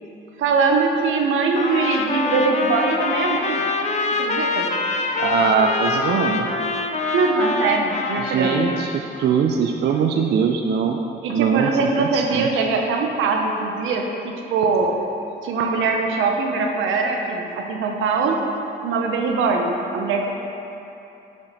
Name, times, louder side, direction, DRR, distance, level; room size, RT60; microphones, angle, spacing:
voice 1, 0.4-3.6 4.1-4.7 7.1-8.6 11.2-14.9 15.4-18.4 18.8-20.3, right 4 dB, 85° right, 2 dB, 0.7 m, -22 dB
Trumpet, 1.6-9.0, left 3 dB, 35° left, 0.5 m, -25 dB
voice 2, 5.2-6.5 8.2-11.0 11.3-11.7 12.0-12.5, right 6 dB, 55° right, 2 dB, 0.4 m, -21 dB
6.2 x 4.8 x 4.1 m, 2.8 s
cardioid pair, 90°, 20 cm